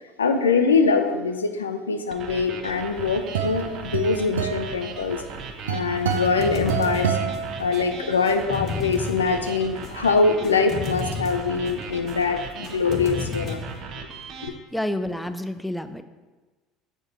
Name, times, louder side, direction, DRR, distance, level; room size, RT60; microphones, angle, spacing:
voice 1, 0.2-5.2 5.6-7.2 7.6-13.6 14.4-14.5, left 4 dB, 85° left, 7 dB, 0.4 m, -23 dB
sound 1, 2.1-14.5, right 5 dB, 50° right, 0.8 m, -38 dB
sound 2, 2.7-8.2, right 7 dB, 80° right, 0.5 m, -29 dB
sound 3, 5.7-13.8, left 5 dB, 45° left, 1.1 m, -34 dB
voice 2, 14.7-16.0, left 1 dB, ahead, 10 dB, 0.4 m, -29 dB
6.6 x 4.4 x 4.7 m, 1.3 s
hypercardioid pair, 65°, 0 cm